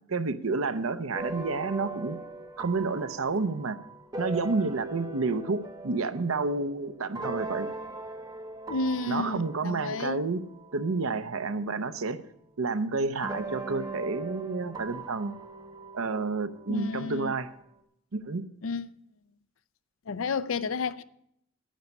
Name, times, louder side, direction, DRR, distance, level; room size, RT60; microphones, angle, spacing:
voice 1, 0.1-2.2 2.6-3.8 4.2-7.7 9.1-10.4 10.7-12.2 12.6-15.3 15.9-17.5 18.1-18.4, right 3 dB, 85° right, 0.8 m, -30 dB
sound 1, 1.1-12.0 13.2-17.7, right 2 dB, 20° right, 0.9 m, -40 dB
voice 2, 8.7-10.2 16.7-17.3 18.6-18.9 20.1-21.0, left 4 dB, 75° left, 0.5 m, -31 dB
10.5 x 9.6 x 5.3 m
head